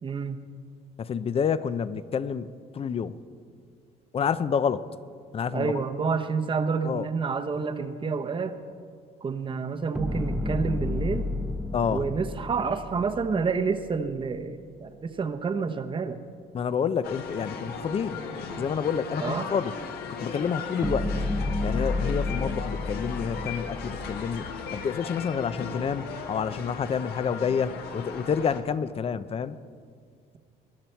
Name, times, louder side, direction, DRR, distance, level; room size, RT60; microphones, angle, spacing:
voice 1, 0.0-0.4 5.5-8.6 9.2-11.3 11.9-16.2 19.2-19.5, right 5 dB, 30° right, 8 dB, 0.9 m, -29 dB
voice 2, 1.0-3.2 4.1-4.9 5.3-5.8 6.8-7.1 11.7-12.0 16.5-18.2 18.6-19.7 20.2-21.1 21.6-29.6, left 7 dB, 35° left, 15 dB, 0.6 m, -28 dB
sound 1, 10.0-14.2 20.8-24.6, left 2 dB, 5° right, 0.8 m, -31 dB
sound 2, 17.0-28.6, left 5 dB, 70° left, 1.6 m, -37 dB
21.0 x 11.0 x 4.5 m, 2.2 s
cardioid pair, 110°, 17 cm